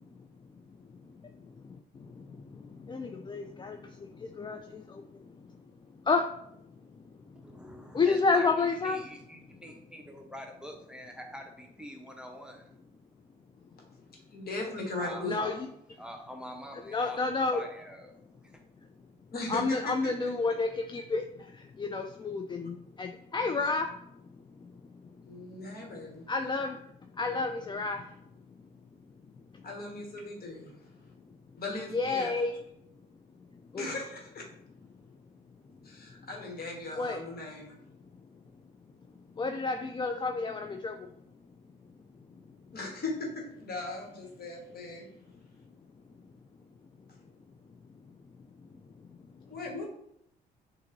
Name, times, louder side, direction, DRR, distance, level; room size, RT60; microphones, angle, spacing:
voice 1, 1.6-2.4 2.9-5.3 6.1-6.3 7.0-7.1 7.6-7.7 7.9-9.0 15.2-15.7 16.9-17.6 19.5-24.0 24.6-24.7 25.8-26.8 27.1-28.1 31.9-32.6 33.7-33.9 37.0-37.2 39.4-41.1 49.1-49.2, left 4 dB, 25° left, 5 dB, 0.4 m, -31 dB
voice 2, 7.4-12.7 15.0-15.6 16.0-17.2 17.5-18.1 18.4-18.6, equal, 5° right, 2 dB, 0.8 m, -45 dB
voice 3, 14.3-15.4 19.3-20.3 25.2-26.3 29.6-30.8 31.6-32.3 33.8-34.4 35.8-37.7 42.7-45.0 49.5-49.8, left 2 dB, 50° left, 0 dB, 1.6 m, -38 dB
6.4 x 2.6 x 2.7 m, 0.75 s
hypercardioid pair, 55°, 21 cm